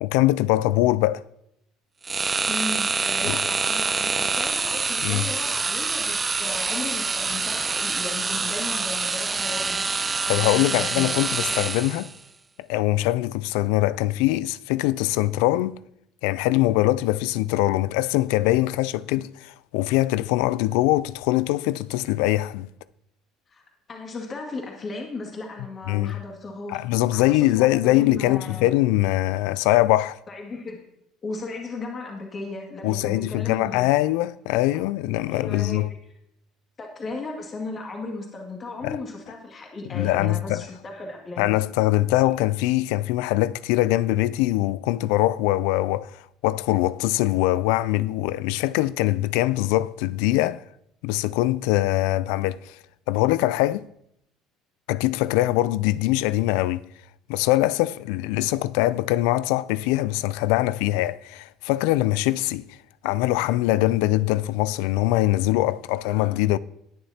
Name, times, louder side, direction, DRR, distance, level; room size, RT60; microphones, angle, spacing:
voice 1, 0.0-1.2 3.2-3.4 5.0-5.3 10.3-12.1 12.7-15.8 16.2-22.7 25.9-26.2 26.7-30.2 32.8-35.9 38.8-39.0 39.9-40.6 41.4-50.6 51.0-52.8 53.1-53.8 54.9-56.9 57.3-62.8 63.0-66.6, left 16 dB, 80° left, 0.3 m, -22 dB
sound 1, 2.0-12.2, right 4 dB, 25° right, 0.4 m, -26 dB
voice 2, 2.5-9.9 10.3-11.2 23.5-23.6 23.9-26.8 27.1-28.7 30.3-30.8 31.2-34.0 34.7-34.8 35.3-35.8 36.8-41.5, left 3 dB, 35° left, 2.1 m, -36 dB
19.5 x 7.1 x 2.8 m
supercardioid pair, 90°, 0 cm